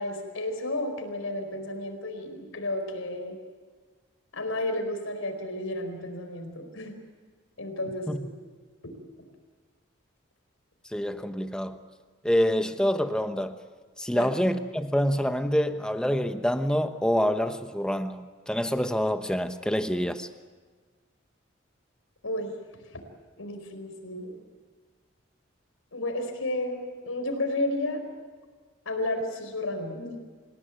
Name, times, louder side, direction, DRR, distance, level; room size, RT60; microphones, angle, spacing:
voice 1, 0.0-3.4 4.3-6.9 7.6-8.3 8.8-8.9 14.1-14.3 22.2-22.5 22.9-23.0 23.4-24.4 25.9-28.0 28.8-30.2, left 1 dB, 90° left, 5 dB, 4.8 m, -32 dB
voice 2, 10.9-11.8 12.2-13.5 14.0-20.3, equal, 5° left, 8 dB, 1.0 m, -26 dB
27.5 x 17.0 x 9.4 m, 1.5 s
head